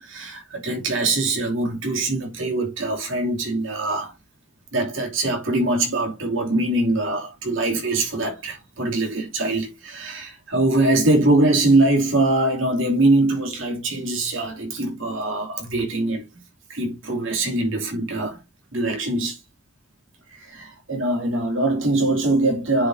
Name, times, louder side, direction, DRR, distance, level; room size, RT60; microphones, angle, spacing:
voice 1, 0.0-4.1 4.7-16.2 16.7-18.4 18.7-19.4 20.3-22.9, right 2 dB, 70° right, 2.8 m, -22 dB
10.5 x 5.7 x 2.7 m
head